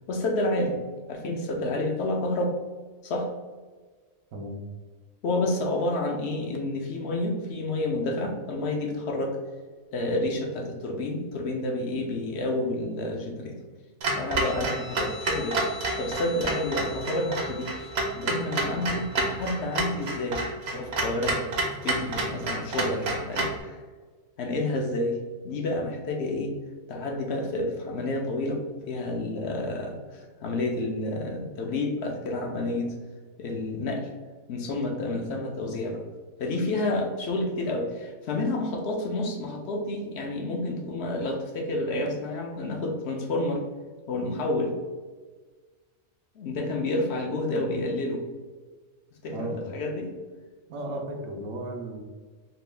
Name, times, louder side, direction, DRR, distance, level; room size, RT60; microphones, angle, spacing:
voice 1, 0.1-0.8 1.1-2.6 3.0-3.3 5.2-9.4 9.9-13.6 14.2-20.4 20.7-21.5 21.8-23.8 24.4-25.2 25.4-26.5 26.9-33.0 33.4-34.1 34.5-36.0 36.4-43.6 44.1-44.8 46.4-48.2 49.2-50.1, left 2 dB, 65° left, 2 dB, 0.7 m, -29 dB
voice 2, 4.3-4.7 47.5-47.7 49.3-49.6 50.7-52.0, right 1 dB, 80° right, 2 dB, 1.1 m, -35 dB
Clock, 14.0-23.6, right 2 dB, 55° right, 0.8 m, -29 dB
Guitar, 14.4-21.4, left 6 dB, 30° left, 0.4 m, -45 dB
4.1 x 2.2 x 3.2 m, 1.4 s
omnidirectional pair, 1.5 m